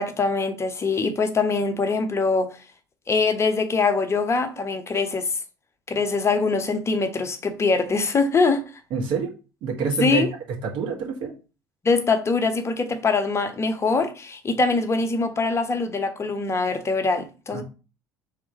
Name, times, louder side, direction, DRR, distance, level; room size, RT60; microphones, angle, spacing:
voice 1, 0.0-2.6 3.1-5.3 5.9-8.6 10.0-10.3 11.8-17.6, left 4 dB, 25° left, 0.9 m, -23 dB
voice 2, 8.9-9.3 9.6-10.2 10.6-11.3 17.5-17.6, right 5 dB, 55° right, 1.5 m, -26 dB
3.5 x 3.4 x 4.4 m
figure-of-eight pair, 60°, 11 cm